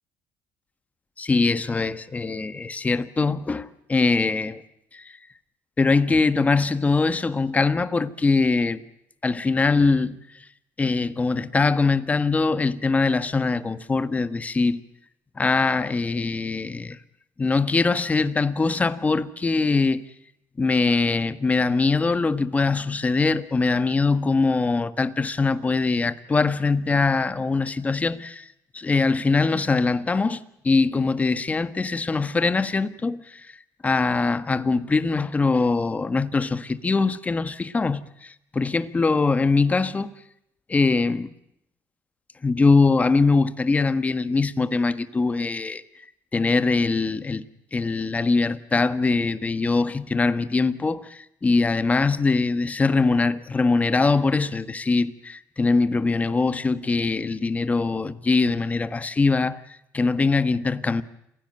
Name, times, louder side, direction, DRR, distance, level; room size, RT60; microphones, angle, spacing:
voice 1, 1.2-4.6 4.9-5.1 5.8-8.8 9.2-10.2 10.8-14.8 15.4-17.0 17.4-20.0 20.6-28.5 28.7-33.5 33.8-40.1 40.7-41.3 42.4-45.8 46.3-47.4 47.7-59.6 59.9-61.0, left 3 dB, 20° left, 1.5 m, -22 dB
27.5 x 16.5 x 8.9 m
cardioid pair, 100°, 7 cm